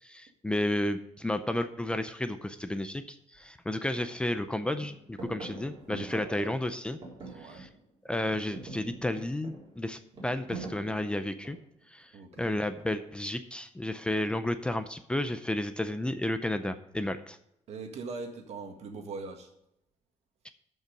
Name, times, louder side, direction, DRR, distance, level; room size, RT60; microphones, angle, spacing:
voice 1, 0.0-7.0 7.4-7.7 8.1-11.6 11.9-12.1 12.4-17.4 20.4-20.5, left 1 dB, 10° left, 9 dB, 0.5 m, -32 dB
sound 1, 3.3-3.5 3.9-4.5 4.8-7.9 8.2-11.8 12.8-13.3, right 3 dB, 35° right, 3.9 m, -45 dB
voice 2, 6.0-6.5 7.2-7.6 12.1-12.6 17.7-19.5, right 4 dB, 65° right, 4 dB, 1.8 m, -42 dB
13.0 x 5.5 x 5.2 m, 0.80 s
cardioid pair, 165°, 12 cm